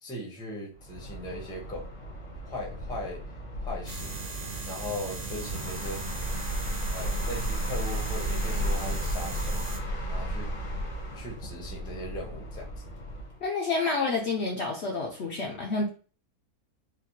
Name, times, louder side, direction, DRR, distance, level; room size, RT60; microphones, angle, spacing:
voice 1, 0.0-1.9 2.4-3.2 3.6-4.2 4.6-6.0 6.9-9.5 10.1-10.5 11.1-12.8, left 1 dB, 5° left, -1 dB, 0.5 m, -38 dB
sound 1, 0.7-13.4, equal, 80° left, 1.5 m, -34 dB
sound 2, 3.9-9.8, right 4 dB, 60° right, 0.4 m, -38 dB
voice 2, 13.4-15.9, left 3 dB, 65° left, 0 dB, 0.7 m, -29 dB
4.1 x 2.3 x 2.7 m, 0.38 s
omnidirectional pair, 1.6 m